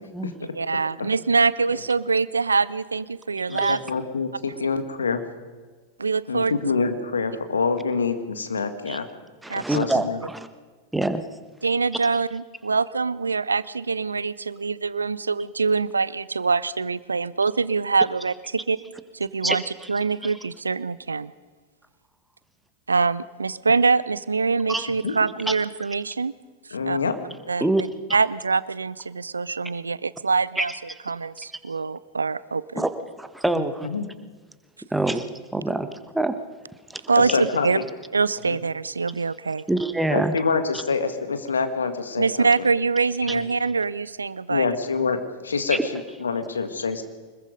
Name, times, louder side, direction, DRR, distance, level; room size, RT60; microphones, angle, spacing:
voice 1, 0.4-3.8 6.0-6.5 9.5-9.8 11.6-18.8 19.1-19.6 19.9-21.3 22.9-26.3 26.9-27.0 27.5-30.7 31.1-32.8 37.1-37.8 38.1-39.6 42.2-44.7, right 4 dB, 75° right, 19 dB, 0.6 m, -24 dB
voice 2, 3.5-5.2 6.3-9.1 9.5-10.2 25.0-25.1 26.7-27.1 33.5-34.1 37.2-37.8 38.5-38.6 40.1-42.5 43.3-43.4 44.5-47.0, left 4 dB, 70° left, 9 dB, 1.9 m, -26 dB
voice 3, 9.4-10.5 10.9-11.2 19.4-19.6 19.8-19.9 20.2-20.3 24.7-24.8 25.5-25.6 27.6-27.8 30.6-30.7 32.7-32.9 33.2-33.9 34.9-35.3 35.5-36.4 36.9-37.0 39.7-40.3 43.3-43.4 45.7-45.8, right 2 dB, 5° right, 10 dB, 1.4 m, -25 dB
25.0 x 21.0 x 5.3 m, 1.4 s
figure-of-eight pair, 90°, 0 cm